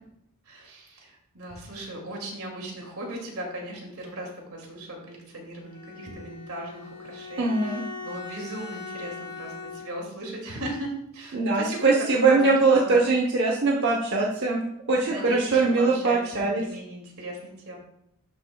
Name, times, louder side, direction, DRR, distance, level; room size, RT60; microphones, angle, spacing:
voice 1, 0.5-13.0 15.0-17.8, right 1 dB, 75° right, 0 dB, 2.4 m, -37 dB
Bowed string instrument, 5.6-10.1, left 4 dB, 85° left, 2.2 m, -40 dB
voice 2, 7.4-7.8 11.3-14.6 14.9-16.6, right 3 dB, 50° right, -1 dB, 0.9 m, -22 dB
12.0 x 6.5 x 2.3 m, 0.78 s
head